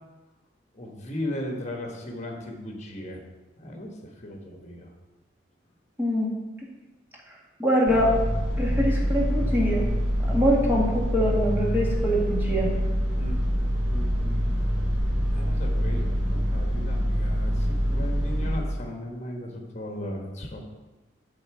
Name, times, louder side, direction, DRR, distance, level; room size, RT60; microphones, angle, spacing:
voice 1, 0.7-3.2 3.6-3.9 4.2-4.9 13.1-13.4 13.9-20.6, left 1 dB, 35° left, 2 dB, 1.4 m, -37 dB
voice 2, 6.0-6.3 7.6-8.1 8.6-9.9 10.3-12.7, equal, 10° right, -4 dB, 1.8 m, -24 dB
sound 1, 7.9-18.6, equal, 65° right, 2.0 m, -25 dB
8.4 x 4.1 x 7.0 m, 1.1 s
head